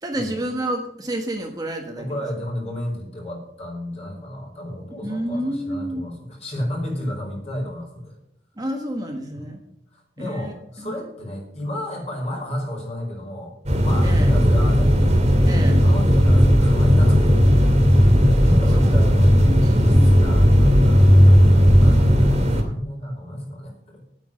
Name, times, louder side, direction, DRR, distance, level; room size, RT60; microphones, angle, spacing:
voice 1, 0.0-2.1 5.0-6.1 8.6-9.6 10.2-10.9 14.0-14.3 15.4-15.9 18.7-19.1 19.6-20.1, right 1 dB, 20° right, 2 dB, 1.4 m, -29 dB
voice 2, 2.0-8.2 9.3-9.4 10.2-13.5 13.8-14.9 15.7-17.2 18.4-19.3 19.7-24.0, left 1 dB, 35° left, 0 dB, 4.9 m, -32 dB
sound 1, 13.7-22.6, equal, 40° right, 2.5 m, -15 dB
10.5 x 9.0 x 6.4 m, 0.73 s
head